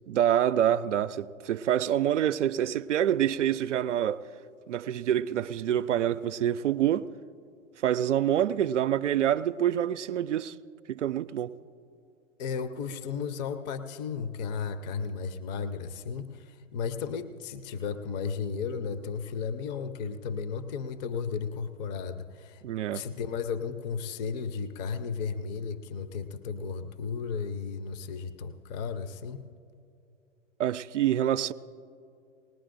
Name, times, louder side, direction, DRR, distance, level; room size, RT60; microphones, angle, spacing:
voice 1, 0.1-4.2 4.7-7.1 7.8-10.5 10.9-11.5 22.6-23.0 30.6-31.5, right 10 dB, 65° right, 0.5 m, -26 dB
voice 2, 12.4-22.6 22.9-29.4, left 6 dB, 35° left, 0.6 m, -34 dB
20.0 x 19.0 x 2.6 m
figure-of-eight pair, 110°, 39 cm